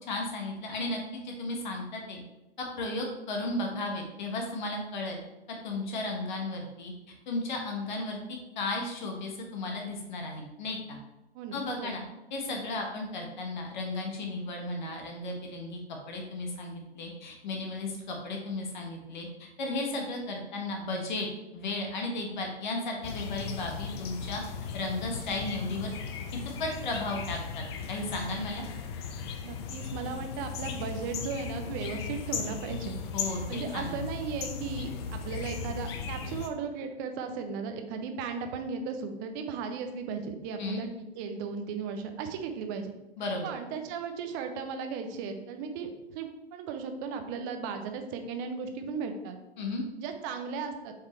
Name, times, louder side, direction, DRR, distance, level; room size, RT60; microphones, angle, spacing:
voice 1, 0.0-2.2 2.6-5.2 5.6-6.9 7.3-11.0 11.5-12.0 12.3-15.8 16.1-24.4 24.7-25.9 26.6-28.6 33.1-34.0 40.6-40.8 43.2-43.5 49.6-49.8, left 2 dB, 45° left, 1 dB, 1.2 m, -34 dB
voice 2, 11.3-12.0 29.4-33.0 33.5-40.9 41.2-42.9 43.4-49.4 50.0-50.9, right 5 dB, 20° right, 6 dB, 0.5 m, -36 dB
sound 1, 23.0-36.5, left 6 dB, 25° left, 0.5 m, -37 dB
6.8 x 4.8 x 3.2 m, 0.98 s
figure-of-eight pair, 120°, 32 cm